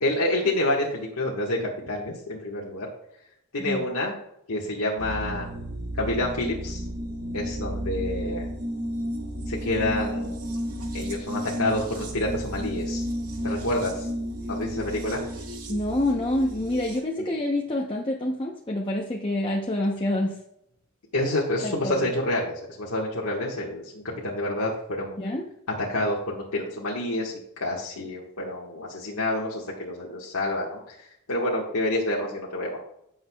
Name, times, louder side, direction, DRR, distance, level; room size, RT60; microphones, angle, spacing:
voice 1, 0.0-2.9 3.5-4.1 4.5-5.5 6.0-6.8 7.3-8.5 9.4-10.4 10.9-13.0 13.4-14.1 14.5-15.2 17.2-17.3 21.1-25.2 25.8-27.3 27.6-32.8, left 1 dB, 80° left, -4 dB, 1.5 m, -28 dB
sound 1, 5.0-17.0, equal, 75° right, 2.0 m, -32 dB
voice 2, 15.7-20.3 21.6-22.0 25.2-25.4, left 1 dB, 25° left, -1 dB, 0.8 m, -27 dB
16.0 x 6.5 x 2.3 m, 0.77 s
head